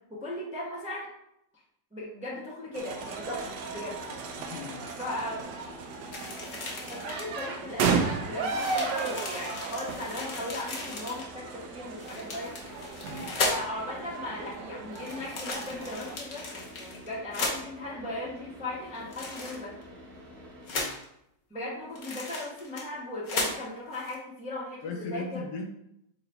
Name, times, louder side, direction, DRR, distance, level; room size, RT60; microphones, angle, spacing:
voice 1, 0.1-1.1 1.9-4.0 5.0-5.7 6.9-12.6 13.4-19.9 21.5-25.4, left 1 dB, 10° right, -5 dB, 0.5 m, -37 dB
sound 1, 2.7-16.2, right 5 dB, 75° right, 1.1 m, -35 dB
Car / Idling, 2.9-20.7, left 1 dB, 35° right, 1.5 m, -49 dB
voice 2, 4.5-4.9 13.1-13.4 20.7-21.0 24.8-25.8, left 3 dB, 75° left, 2 dB, 1.2 m, -38 dB
sound 2, 6.1-7.4 8.1-8.2 8.5-11.3 12.0-13.8 14.9-17.6 18.9-19.8 20.7-21.0 21.9-23.0 23.2-23.6 23.9-24.1, left 2 dB, 50° left, 1.1 m, -35 dB
3.9 x 2.6 x 4.3 m, 0.79 s
omnidirectional pair, 2.0 m